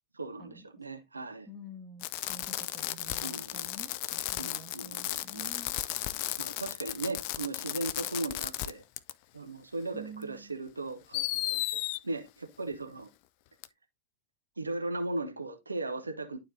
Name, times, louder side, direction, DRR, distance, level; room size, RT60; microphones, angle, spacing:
voice 1, 0.1-1.5 3.2-3.7 4.4-5.5 6.4-8.8 9.3-11.6 12.0-13.1 14.6-16.4, right 2 dB, 80° right, 1.0 m, -37 dB
voice 2, 1.5-5.8 9.9-10.6, right 2 dB, 5° right, 1.7 m, -48 dB
Fireworks, 2.0-8.7 9.0-9.1 10.2-10.3 11.1-12.0 13.6-13.7, left 15 dB, 45° left, 0.4 m, -34 dB
11.5 x 4.4 x 2.7 m
figure-of-eight pair, 90°, 0 cm